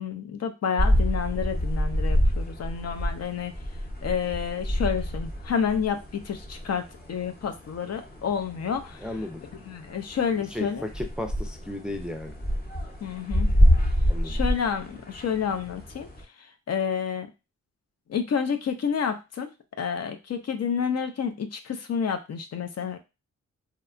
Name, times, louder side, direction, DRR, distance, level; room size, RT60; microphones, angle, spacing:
voice 1, 0.0-3.5 4.0-9.1 9.7-10.8 13.0-13.5 14.2-16.1 16.4-17.3 18.1-19.5 19.8-23.0, left 7 dB, 60° left, 7 dB, 0.5 m, -29 dB
sound 1, 0.8-16.2, equal, 30° left, 0.9 m, -27 dB
voice 2, 9.0-9.4 10.5-12.3 14.1-14.4, left 1 dB, 5° right, 4 dB, 0.4 m, -34 dB
2.8 x 2.1 x 2.4 m, 0.27 s
cardioid pair, 55°, 30 cm